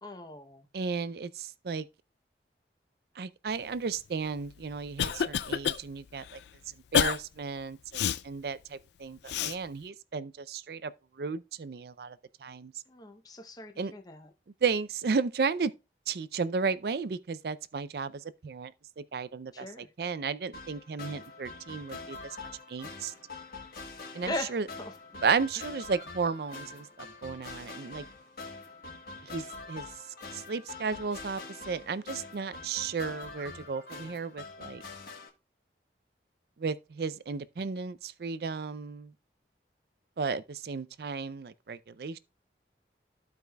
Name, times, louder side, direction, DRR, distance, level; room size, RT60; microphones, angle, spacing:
voice 1, 0.0-0.7 12.9-14.3 19.5-19.9 24.3-25.2 25.6-25.7, left 1 dB, 20° left, 0.7 m, -40 dB
voice 2, 0.7-1.9 3.2-6.4 6.9-10.9 11.2-12.7 13.8-13.9 14.6-15.7 16.1-18.7 19.0-22.2 22.7-23.1 24.1-24.6 25.2-28.0 29.3-29.9 30.3-31.4 31.7-34.8 36.6-39.1 40.2-42.2, right 5 dB, 60° right, 0.4 m, -34 dB
Cough, 4.4-5.8 6.2-6.4 6.9-7.2 7.9-8.2 9.3-9.6, left 8 dB, 70° left, 0.3 m, -28 dB
sound 1, 20.5-35.3, left 3 dB, 55° left, 1.5 m, -45 dB
14.0 x 4.7 x 2.2 m
head